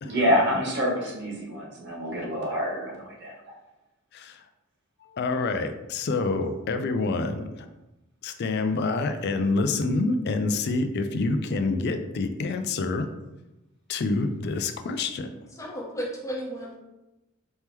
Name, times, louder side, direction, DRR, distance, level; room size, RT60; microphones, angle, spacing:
voice 1, 0.0-3.3, equal, 55° right, -3 dB, 1.1 m, -26 dB
voice 2, 4.1-4.4 5.1-7.7 8.2-13.1 13.9-15.3, left 3 dB, 50° left, 7 dB, 0.4 m, -27 dB
voice 3, 15.5-16.8, equal, 15° left, -2 dB, 0.8 m, -33 dB
4.4 x 2.9 x 3.5 m, 0.97 s
head